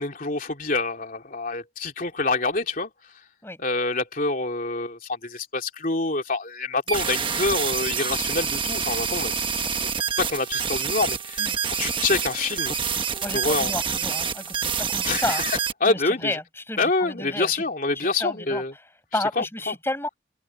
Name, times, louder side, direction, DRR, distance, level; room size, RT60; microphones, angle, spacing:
voice 1, 0.0-2.9 3.6-9.3 9.6-9.7 10.2-11.5 11.8-12.7 13.3-13.7 15.0-16.4 16.8-18.7 19.4-19.7, left 3 dB, 45° left, 3.1 m, -26 dB
sound 1, 6.9-15.7, right 6 dB, 25° right, 1.3 m, -27 dB
voice 2, 13.2-15.4 15.8-17.6 17.9-18.6 19.1-20.1, left 2 dB, 10° left, 6.5 m, -31 dB
head